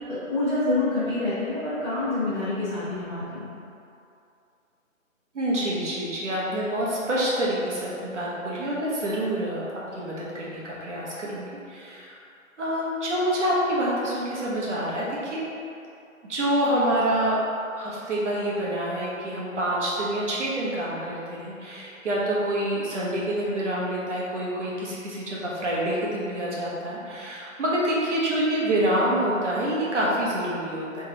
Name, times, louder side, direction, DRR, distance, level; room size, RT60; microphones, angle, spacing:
voice 1, 0.1-3.5, left 2 dB, 5° left, -17 dB, 0.9 m, -27 dB
voice 2, 5.3-12.2 12.6-15.5 16.3-17.4 17.7-31.0, right 1 dB, 60° right, -6 dB, 1.3 m, -27 dB
3.5 x 3.3 x 3.9 m, 2.6 s
hypercardioid pair, 160°, 41 cm